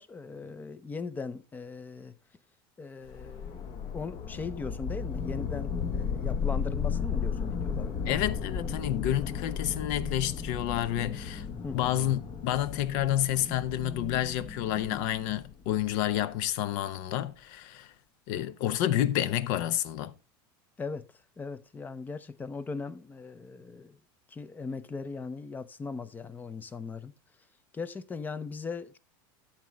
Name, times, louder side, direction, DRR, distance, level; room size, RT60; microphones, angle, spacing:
voice 1, 0.0-2.1 2.8-8.0 11.6-11.9 20.8-21.1 21.4-24.0 24.3-27.1 27.7-29.0, left 4 dB, 15° left, 0.5 m, -39 dB
sound 1, 3.1-16.2, left 6 dB, 40° left, 0.9 m, -35 dB
sound 2, 7.7-15.3, right 1 dB, 15° right, 0.7 m, -47 dB
voice 2, 8.1-11.5 11.7-17.9 18.3-20.1, left 12 dB, 65° left, 0.7 m, -29 dB
11.5 x 7.4 x 3.1 m
supercardioid pair, 135°, 12 cm